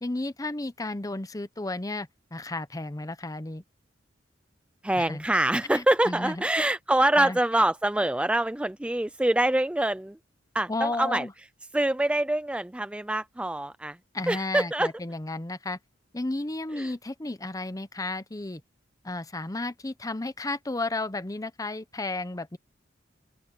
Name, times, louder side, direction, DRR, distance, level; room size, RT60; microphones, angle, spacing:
voice 1, 0.0-3.6 4.9-5.2 5.7-6.4 7.2-7.4 10.7-11.3 14.1-15.8 16.1-18.6 19.0-22.6, left 2 dB, 20° left, 0.8 m, -33 dB
voice 2, 4.8-10.2 10.5-11.3 11.7-14.0 14.3-14.9 16.8-16.9, right 1 dB, 5° right, 0.4 m, -25 dB
open air
head